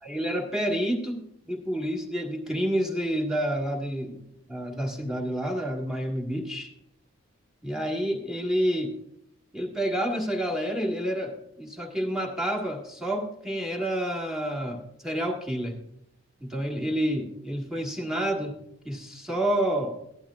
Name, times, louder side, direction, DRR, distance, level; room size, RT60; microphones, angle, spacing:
voice 1, 0.0-4.2 4.5-6.7 7.6-8.9 9.5-15.8 16.4-18.6 18.8-20.0, equal, 5° right, 1 dB, 1.5 m, -29 dB
15.0 x 12.0 x 2.4 m, 0.75 s
head